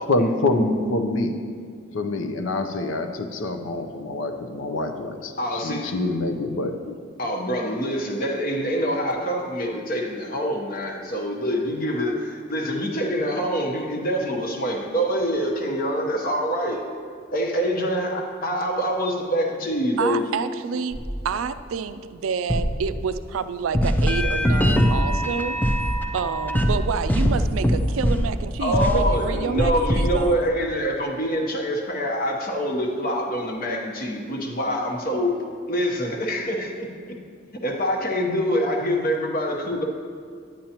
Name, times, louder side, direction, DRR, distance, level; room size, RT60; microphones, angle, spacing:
voice 1, 0.1-1.3 1.9-6.9, left 2 dB, 75° left, 6 dB, 0.6 m, -26 dB
voice 2, 5.4-5.9 7.2-16.8 17.3-20.3 28.6-35.4 35.7-37.2 37.6-39.9, equal, 45° left, 2 dB, 1.0 m, -25 dB
voice 3, 20.0-25.6 26.1-30.3, right 6 dB, 80° right, 12 dB, 0.4 m, -28 dB
sound 1, 20.9-21.6 22.5-23.5 23.7-30.3, equal, 10° left, 0.5 m, -23 dB
10.0 x 9.1 x 2.9 m, 2.1 s
head